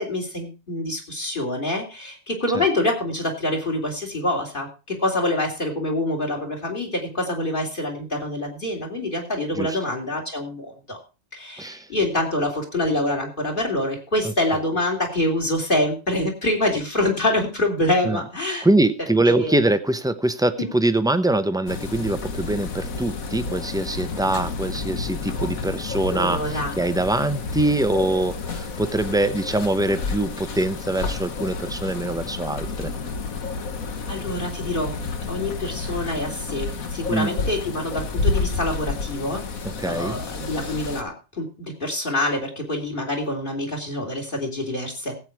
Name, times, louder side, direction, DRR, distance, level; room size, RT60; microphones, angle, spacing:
voice 1, 0.0-11.0 11.3-18.7 19.2-19.6 20.6-20.7 26.1-26.7 34.0-35.0 35.3-39.4 39.8-45.2, left 1 dB, 35° left, 4 dB, 3.3 m, -26 dB
voice 2, 18.6-32.9 37.1-37.3 39.8-40.2, right 2 dB, 5° right, 11 dB, 0.4 m, -23 dB
sound 1, 21.7-41.0, left 4 dB, 75° left, 1.7 m, -30 dB
16.5 x 8.3 x 4.6 m, 0.32 s
omnidirectional pair, 1.5 m